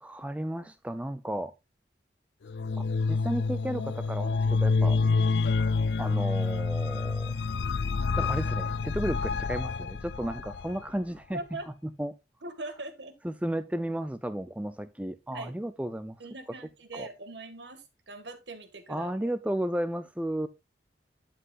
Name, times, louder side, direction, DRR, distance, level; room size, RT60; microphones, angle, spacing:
voice 1, 0.0-1.5 2.8-5.0 6.0-7.3 8.1-11.4 11.8-12.2 13.2-16.2 16.9-17.1 18.9-20.5, right 1 dB, 5° right, 0.5 m, -33 dB
sound 1, 2.5-10.8, left 4 dB, 70° left, 0.4 m, -28 dB
voice 2, 11.3-11.7 12.4-13.1 15.3-15.5 16.2-19.3, right 2 dB, 75° right, 1.9 m, -41 dB
11.5 x 7.8 x 2.5 m
head